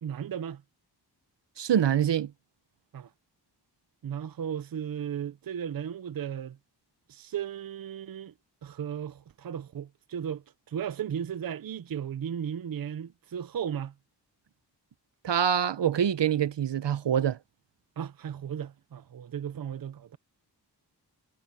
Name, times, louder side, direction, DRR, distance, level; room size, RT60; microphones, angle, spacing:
voice 1, 0.0-0.6 2.9-3.1 4.0-6.6 7.1-8.3 8.6-13.9 18.0-20.2, right 8 dB, 55° right, 0.7 m, -35 dB
voice 2, 1.6-2.3 15.2-17.4, right 9 dB, 85° right, 1.0 m, -25 dB
wide cardioid pair, 155°, 42 cm